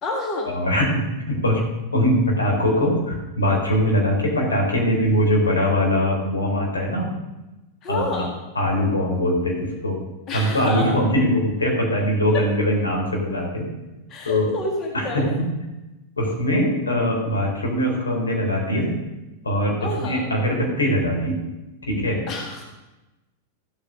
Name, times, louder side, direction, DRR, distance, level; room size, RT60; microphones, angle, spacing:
voice 1, 0.0-0.5 7.8-8.3 10.3-11.0 12.3-12.4 14.1-15.3 19.8-20.2 22.3-22.7, left 2 dB, 35° left, 1 dB, 1.9 m, -28 dB
voice 2, 0.5-1.6 1.9-7.1 7.9-8.3 8.6-10.0 10.3-13.7 14.3-14.5 14.9-15.5 16.2-19.0 19.4-21.4 21.8-22.2, equal, 75° left, 0 dB, 3.8 m, -22 dB
14.0 x 8.7 x 6.3 m, 1.0 s
figure-of-eight pair, 90°, 0 cm